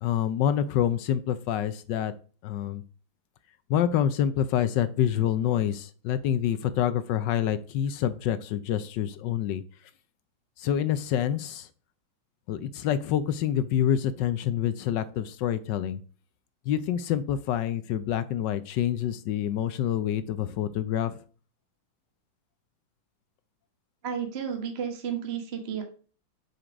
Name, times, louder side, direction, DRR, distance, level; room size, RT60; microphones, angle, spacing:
voice 1, 0.0-2.1 2.4-2.8 3.7-9.6 10.6-11.7 12.5-16.0 16.7-21.2, left 10 dB, 75° left, 1.2 m, -27 dB
voice 2, 24.0-25.8, right 8 dB, 35° right, 1.3 m, -32 dB
6.5 x 6.0 x 5.1 m
omnidirectional pair, 2.1 m